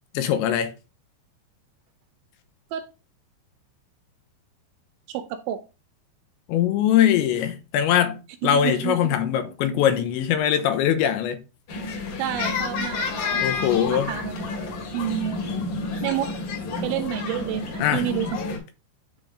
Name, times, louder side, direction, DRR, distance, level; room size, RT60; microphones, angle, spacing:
voice 1, 0.1-0.7 6.5-11.4 13.4-14.1 17.8-18.1, left 10 dB, 80° left, 3.0 m, -22 dB
voice 2, 5.1-5.6 8.4-9.0 12.2-13.0 13.3-13.5 13.9-14.6 14.9-15.4 16.0-16.3 16.8-18.4, right 11 dB, 80° right, 2.8 m, -29 dB
sound 1, 11.7-18.6, left 4 dB, 55° left, 3.1 m, -30 dB
10.5 x 3.5 x 4.8 m
omnidirectional pair, 5.6 m